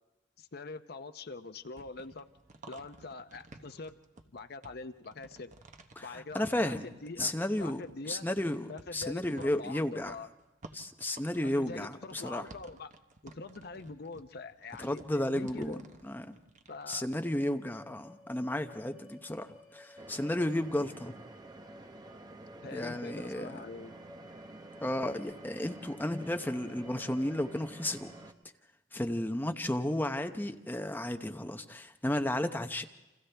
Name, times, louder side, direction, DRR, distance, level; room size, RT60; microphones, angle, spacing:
voice 1, 0.4-2.3 2.7-4.0 4.3-5.5 6.0-7.3 7.6-8.3 8.7-10.3 11.4-12.9 13.2-15.8 16.7-17.1 22.6-24.0, left 3 dB, 60° left, 9 dB, 0.8 m, -44 dB
sound 1, 1.6-7.2 7.6-17.0, right 2 dB, 45° right, 1.1 m, -54 dB
voice 2, 6.0-6.9 7.2-10.2 10.7-12.5 14.8-16.4 16.9-21.2 22.7-23.5 24.8-28.1 28.9-32.8, left 1 dB, 10° left, 6 dB, 0.8 m, -33 dB
sound 2, 17.1-28.3, left 1 dB, 5° right, 3.6 m, -56 dB
sound 3, 20.0-28.3, right 2 dB, 20° right, 0.8 m, -50 dB
29.5 x 26.5 x 3.4 m, 1.0 s
head